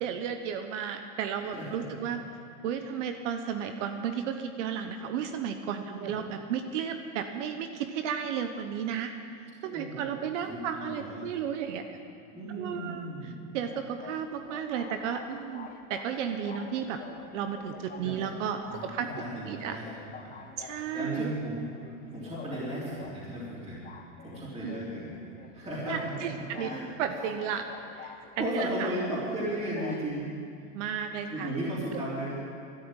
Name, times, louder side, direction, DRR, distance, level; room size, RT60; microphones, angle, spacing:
voice 1, 0.0-2.2 2.6-9.1 9.6-11.8 12.5-17.0 17.3-19.1 19.3-19.8 20.6-21.3 24.6-24.7 25.8-26.7 27.0-27.7 27.9-28.9 30.7-31.5 31.9-32.0, right 8 dB, 65° right, 7 dB, 1.1 m, -33 dB
voice 2, 1.5-2.0 5.8-6.1 9.7-10.0 10.4-11.3 12.3-13.4 17.9-18.2 18.7-21.7 22.1-23.8 24.2-25.1 25.5-26.9 28.4-30.3 31.3-32.4, right 1 dB, 15° right, -7 dB, 3.5 m, -35 dB
sound 1, 13.6-30.1, left 6 dB, 20° left, 1.3 m, -47 dB
13.0 x 11.0 x 9.0 m, 2.5 s
supercardioid pair, 135°, 39 cm